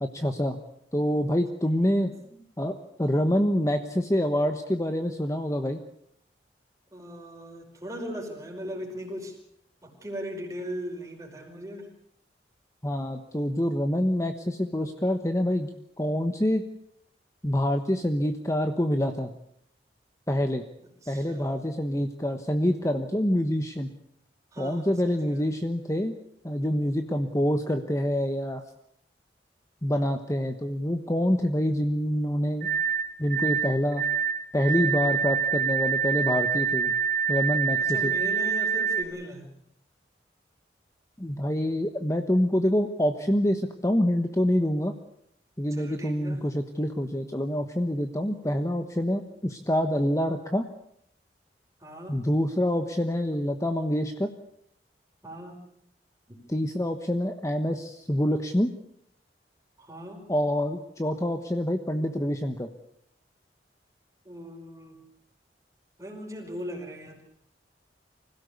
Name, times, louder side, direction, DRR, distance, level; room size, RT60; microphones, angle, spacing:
voice 1, 0.0-0.6 0.9-2.1 2.6-5.8 12.8-15.7 16.0-16.6 17.4-19.3 20.3-20.6 21.1-23.9 24.6-26.1 26.4-28.6 29.8-32.7 33.2-34.0 34.5-36.9 37.3-38.1 41.2-44.9 45.6-50.6 52.1-54.3 56.5-58.7 60.3-62.7, equal, 20° left, 6 dB, 1.1 m, -26 dB
voice 2, 6.9-9.4 9.8-11.9 21.0-21.8 24.5-25.5 37.8-39.5 45.7-46.4 51.8-52.2 55.2-55.7 56.3-56.4 59.8-60.3 64.3-65.0 66.0-67.2, equal, 20° right, 2 dB, 5.3 m, -39 dB
sound 1, 32.6-39.0, right 6 dB, 45° right, 4.1 m, -26 dB
25.5 x 16.5 x 8.2 m, 0.73 s
head